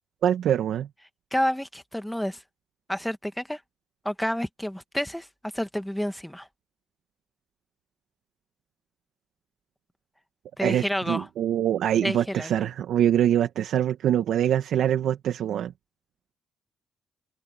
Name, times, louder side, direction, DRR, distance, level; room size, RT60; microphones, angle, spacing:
voice 1, 0.2-0.9 10.6-15.7, right 10 dB, 75° right, 1.7 m, -24 dB
voice 2, 1.3-2.4 2.9-3.6 4.0-5.3 5.5-6.5 10.6-11.2 12.0-12.5, equal, 5° left, 1.7 m, -29 dB
open air
cardioid pair, 90°, 0 cm